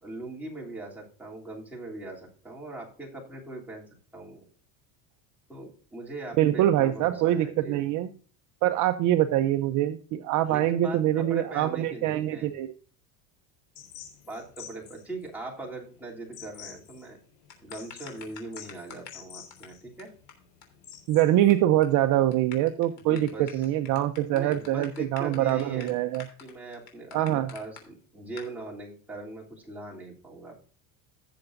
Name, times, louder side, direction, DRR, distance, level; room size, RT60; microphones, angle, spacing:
voice 1, 0.0-4.4 5.5-7.8 10.5-12.5 14.3-17.2 17.6-20.1 22.9-23.6 24.3-26.0 26.4-30.7, right 2 dB, 5° right, -4 dB, 2.9 m, -40 dB
voice 2, 6.4-8.1 8.6-12.7 21.1-26.2 27.1-27.5, right 13 dB, 45° right, 9 dB, 0.6 m, -24 dB
sound 1, 13.7-21.5, left 9 dB, 85° left, 4.3 m, -49 dB
sound 2, 17.5-19.2 19.5-19.7 20.0-20.1 20.3-20.4 20.6-20.7 20.9-21.5 21.8-22.0 22.3-27.8 28.4-28.5, left 8 dB, 65° left, 3.4 m, -46 dB
16.5 x 6.9 x 2.6 m, 0.42 s
supercardioid pair, 135°, 42 cm